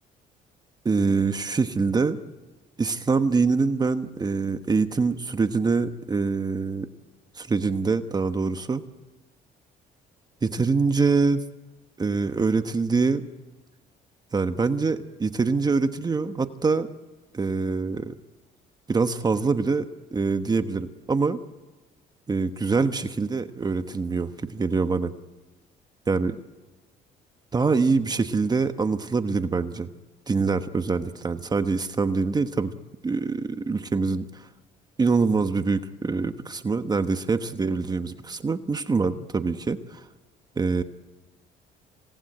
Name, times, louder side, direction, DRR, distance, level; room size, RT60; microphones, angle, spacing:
voice 1, 0.8-2.2 2.8-6.9 7.4-8.8 10.4-11.4 12.0-13.3 14.3-16.9 17.3-18.1 18.9-21.4 22.3-25.1 26.1-26.4 27.5-29.9 30.3-32.7 33.0-34.4 35.0-40.0 40.6-40.8, right 4 dB, 25° right, 9 dB, 1.2 m, -24 dB
27.0 x 18.5 x 8.7 m, 1.2 s
cardioid pair, 110°, 17 cm